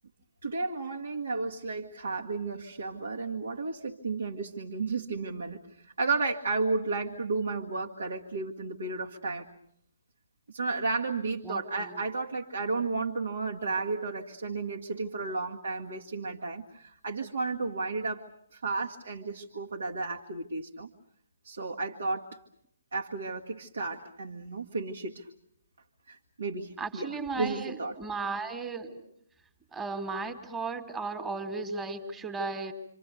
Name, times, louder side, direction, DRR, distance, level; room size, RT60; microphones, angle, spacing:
voice 1, 0.4-9.5 10.5-18.2 18.5-20.9 21.4-22.4 22.9-25.3 26.1-27.1 27.4-27.9, right 3 dB, 65° right, 0 dB, 1.8 m, -33 dB
voice 2, 11.4-12.0 26.8-29.0 29.7-32.7, right 3 dB, 10° right, 7 dB, 2.0 m, -35 dB
28.0 x 26.0 x 6.9 m, 0.74 s
figure-of-eight pair, 135°, 0 cm